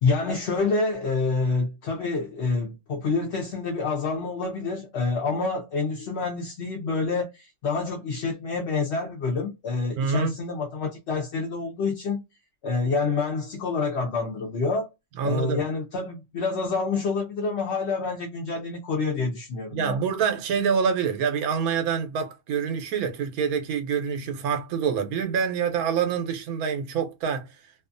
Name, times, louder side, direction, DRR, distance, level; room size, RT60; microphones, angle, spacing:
voice 1, 0.0-12.2 12.6-14.9 15.2-20.0, left 4 dB, 60° left, 0.8 m, -27 dB
voice 2, 10.0-10.3 15.2-15.6 19.7-27.6, right 6 dB, 80° right, 1.1 m, -26 dB
2.6 x 2.3 x 2.5 m
omnidirectional pair, 1.5 m